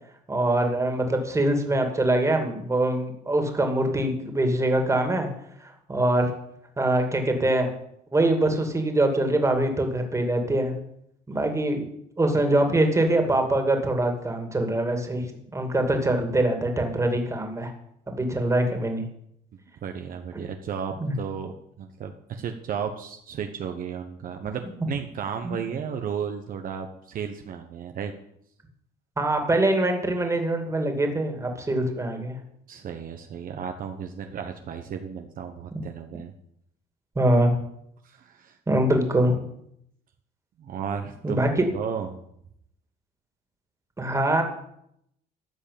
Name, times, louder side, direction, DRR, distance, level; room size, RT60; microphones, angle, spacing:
voice 1, 0.3-5.3 5.6-6.3 6.8-7.7 8.1-10.7 11.3-11.9 12.2-15.2 15.5-17.7 18.1-19.0 20.3-20.4 21.0-21.1 25.4-25.6 29.2-32.4 37.2-37.5 38.7-39.4 41.2-41.5 44.0-44.4, right 1 dB, 15° right, 4 dB, 2.5 m, -23 dB
voice 2, 19.8-28.1 32.7-36.3 38.0-38.6 40.6-42.2, right 7 dB, 55° right, 6 dB, 1.1 m, -34 dB
14.0 x 5.5 x 8.6 m, 0.74 s
cardioid pair, 110°, 17 cm